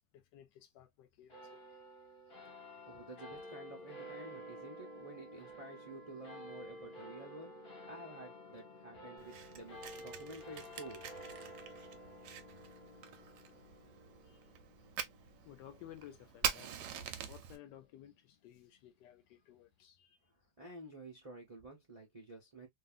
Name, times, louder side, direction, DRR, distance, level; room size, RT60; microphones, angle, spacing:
voice 1, 0.1-1.6 2.6-2.7 11.8-12.0 14.2-14.5 15.2-20.2, left 11 dB, 75° left, 1.2 m, -56 dB
sound 1, 1.3-18.0, equal, 35° left, 0.9 m, -52 dB
voice 2, 2.9-7.5 7.9-11.1 20.6-22.7, right 2 dB, 40° right, 0.4 m, -51 dB
Fire, 9.2-17.6, right 9 dB, 75° right, 1.1 m, -44 dB
2.7 x 2.7 x 2.3 m
omnidirectional pair, 2.0 m